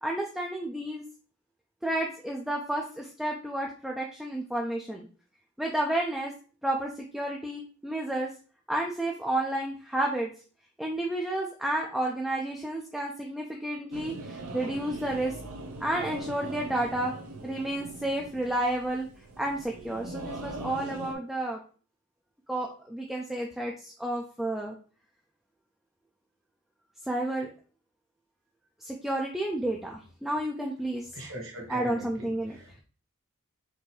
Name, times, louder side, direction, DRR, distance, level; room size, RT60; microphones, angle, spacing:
voice 1, 0.0-1.0 1.8-5.1 5.6-6.3 6.6-8.3 8.7-10.3 10.8-15.3 15.8-17.1 17.4-19.1 19.4-21.6 22.5-24.7 27.1-27.5 28.8-31.3 31.7-32.6, right 1 dB, ahead, -1 dB, 0.3 m, -31 dB
sound 1, 13.9-21.1, right 2 dB, 80° right, 0.6 m, -41 dB
voice 2, 31.1-32.8, right 1 dB, 65° right, -1 dB, 1.6 m, -41 dB
4.4 x 2.6 x 3.2 m, 0.39 s
head